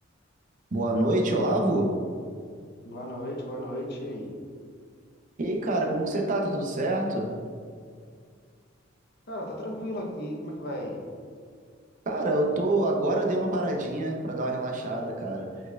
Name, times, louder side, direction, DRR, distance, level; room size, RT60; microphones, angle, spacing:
voice 1, 0.7-2.0 5.4-7.4 12.1-15.6, right 1 dB, 40° right, 1 dB, 0.5 m, -26 dB
voice 2, 2.8-4.3 9.3-11.0, equal, 55° left, 0 dB, 0.7 m, -35 dB
4.6 x 4.1 x 2.2 m, 2.1 s
head